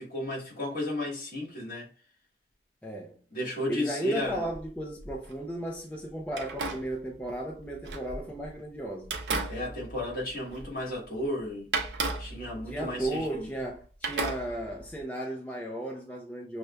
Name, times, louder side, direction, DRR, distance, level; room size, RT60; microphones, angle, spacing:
voice 1, 0.0-1.9 3.3-4.5 9.5-11.8 12.2-13.5, left 1 dB, 50° left, 1.6 m, -34 dB
voice 2, 2.8-3.2 3.7-9.1 12.7-16.6, right 1 dB, 10° left, 0.4 m, -35 dB
sound 1, 4.2-5.4 6.3-8.6 9.0-10.9 11.2-11.3 11.7-13.7 14.0-15.0, right 3 dB, 70° right, 0.7 m, -35 dB
6.1 x 2.2 x 2.2 m
head